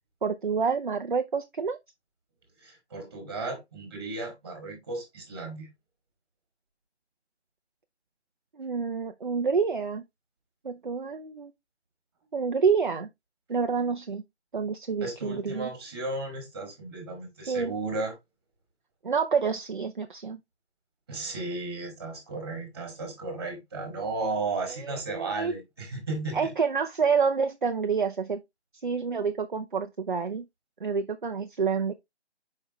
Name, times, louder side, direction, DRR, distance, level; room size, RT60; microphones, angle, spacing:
voice 1, 0.2-1.8 8.5-10.0 10.6-11.5 12.3-13.1 13.5-14.2 14.5-15.7 17.4-17.7 19.0-20.4 24.8-25.5 26.3-28.4 28.8-30.5 30.8-31.9, right 5 dB, 45° right, 0.7 m, -28 dB
voice 2, 2.6-5.7 15.0-18.1 21.1-26.5, right 3 dB, 20° right, 2.1 m, -34 dB
7.1 x 5.4 x 3.0 m
figure-of-eight pair, 170°, 34 cm